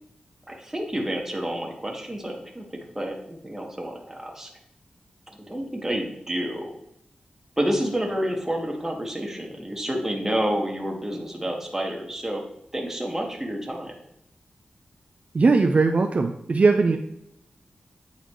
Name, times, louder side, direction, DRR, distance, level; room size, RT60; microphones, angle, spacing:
voice 1, 0.5-2.7 2.9-4.5 5.3-6.8 7.6-12.4 12.7-13.9, equal, 15° right, 1 dB, 1.5 m, -29 dB
voice 2, 15.3-17.0, right 4 dB, 50° right, 4 dB, 0.5 m, -19 dB
9.4 x 4.0 x 3.1 m, 0.76 s
cardioid pair, 65°, 3 cm